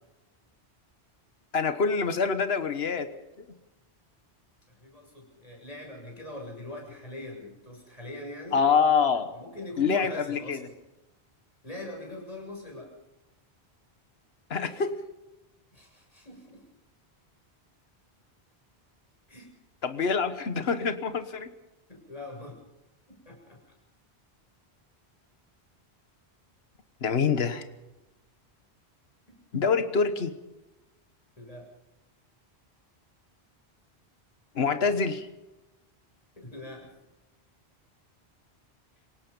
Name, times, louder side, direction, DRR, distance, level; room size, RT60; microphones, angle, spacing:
voice 1, 1.5-3.1 8.5-9.3 9.8-10.7 14.5-14.9 19.8-21.5 27.0-27.7 29.5-30.3 34.5-35.3, left 5 dB, 70° left, 10 dB, 1.5 m, -25 dB
voice 2, 4.8-8.6 9.3-10.6 11.6-12.9 15.7-16.6 19.3-19.5 21.9-22.6 23.1-23.6 29.3-29.6 31.4-31.7 36.4-36.9, left 1 dB, 35° left, 0 dB, 7.3 m, -42 dB
27.0 x 18.0 x 5.4 m, 1.0 s
omnidirectional pair, 1.1 m